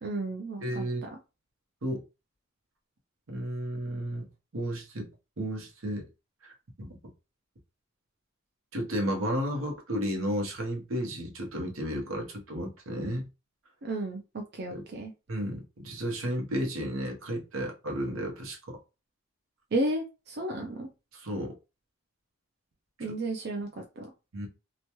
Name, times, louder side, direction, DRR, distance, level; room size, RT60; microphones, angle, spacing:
voice 1, 0.0-1.1 13.8-15.1 19.7-20.9 23.0-23.7 24.0-24.1, right 2 dB, 50° right, 0.4 m, -33 dB
voice 2, 0.6-1.1 1.8-2.0 3.3-4.3 4.5-5.1 5.4-6.1 6.4-7.0 8.7-13.3 14.7-14.8 15.3-18.8 21.1-21.5 23.0-23.1 24.3-24.5, equal, 80° right, 1.0 m, -33 dB
2.9 x 2.2 x 2.9 m
head